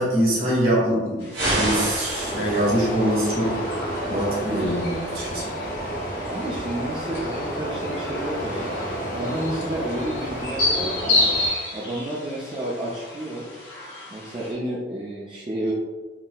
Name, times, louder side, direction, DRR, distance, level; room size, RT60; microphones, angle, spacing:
voice 1, 0.0-3.6 4.1-5.4, equal, 55° right, -5 dB, 1.4 m, -23 dB
sound 1, 1.2-14.5, left 2 dB, 85° left, 1.2 m, -31 dB
sound 2, 1.3-2.9, right 1 dB, 75° right, 1.4 m, -26 dB
sound 3, 2.1-11.5, right 1 dB, 50° left, 0.8 m, -31 dB
voice 2, 6.3-11.3 11.7-13.5 14.1-15.7, right 1 dB, 30° right, -6 dB, 0.4 m, -31 dB
3.7 x 2.6 x 2.2 m, 1.3 s
head